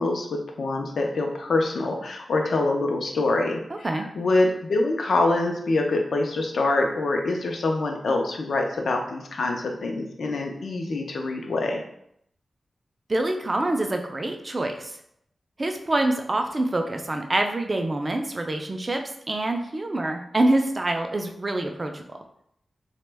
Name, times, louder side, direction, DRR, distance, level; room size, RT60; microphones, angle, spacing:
voice 1, 0.0-11.8, left 2 dB, 70° left, 2 dB, 0.4 m, -25 dB
voice 2, 3.7-4.1 13.1-15.0 15.6-22.0, right 2 dB, 25° right, 4 dB, 0.3 m, -26 dB
2.9 x 2.1 x 3.3 m, 0.73 s
wide cardioid pair, 170°, 0 cm